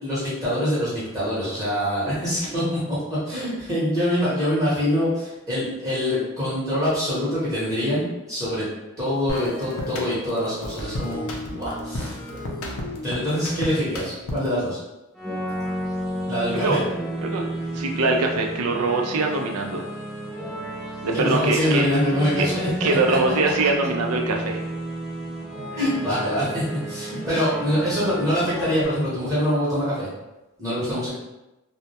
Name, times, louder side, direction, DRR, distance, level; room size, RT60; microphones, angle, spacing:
voice 1, 0.0-2.8 3.2-8.7 9.0-12.2 13.0-14.8 16.3-16.8 21.1-23.2 25.7-30.1 30.6-31.1, equal, 15° right, -10 dB, 0.8 m, -24 dB
sound 1, 9.3-14.6, left 1 dB, 70° left, 0.5 m, -33 dB
sound 2, 15.1-28.8, equal, ahead, 0.4 m, -32 dB
voice 2, 16.5-16.9 17.2-17.4 17.7-19.8 21.0-21.9 22.4-22.5 22.8-24.6 30.9-31.0, right 3 dB, 80° right, 2 dB, 0.4 m, -23 dB
2.2 x 2.1 x 2.8 m, 0.99 s
head